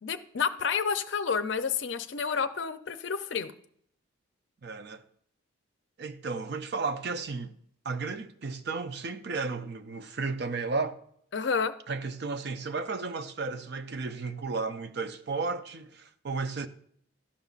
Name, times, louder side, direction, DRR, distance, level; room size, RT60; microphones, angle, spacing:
voice 1, 0.0-3.5 11.3-11.7, left 6 dB, 60° left, 0.5 m, -30 dB
voice 2, 4.6-5.0 6.0-7.6 7.8-11.0 11.9-16.7, right 4 dB, 50° right, 0.5 m, -33 dB
12.5 x 5.3 x 2.4 m
head